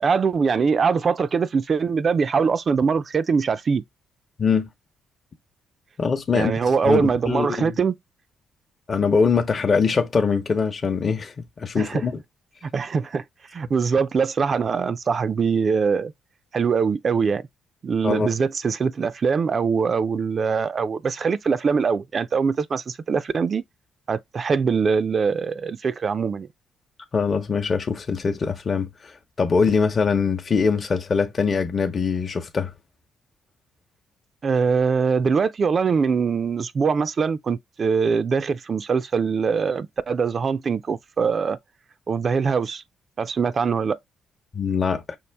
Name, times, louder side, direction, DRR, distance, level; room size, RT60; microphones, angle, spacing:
voice 1, 0.0-3.8 6.3-8.0 11.7-12.0 12.7-13.2 13.5-16.1 16.5-17.5 17.8-23.6 24.1-26.5 34.4-41.6 42.1-42.8 43.2-44.0, right 5 dB, 45° right, 0.4 m, -22 dB
voice 2, 6.0-6.5 6.8-7.7 8.9-12.2 18.0-18.3 27.1-32.7 44.5-45.2, left 5 dB, 40° left, 0.8 m, -23 dB
5.4 x 2.5 x 3.4 m
cardioid pair, 90°, 0 cm